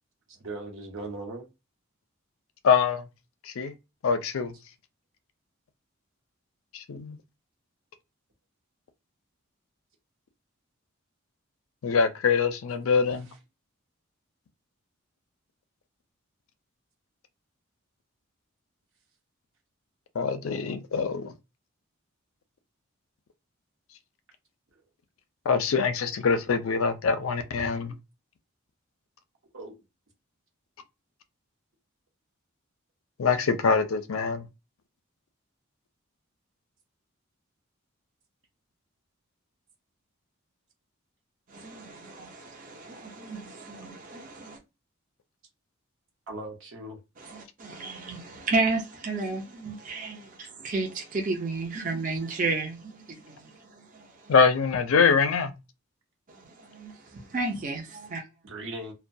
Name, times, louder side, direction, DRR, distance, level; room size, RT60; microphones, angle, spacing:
voice 1, 0.3-1.5 29.5-29.8 46.3-47.0 58.4-58.9, right 2 dB, 70° right, 0.8 m, -38 dB
voice 2, 2.6-3.0 3.5-3.7 4.0-4.5 6.7-7.2 11.8-13.3 20.2-21.3 25.5-28.0 33.2-34.5 54.3-55.6, left 5 dB, 75° left, 0.4 m, -24 dB
voice 3, 41.5-44.6 47.2-54.3 56.3-58.2, right 3 dB, 35° right, 0.5 m, -33 dB
2.2 x 2.1 x 2.5 m
head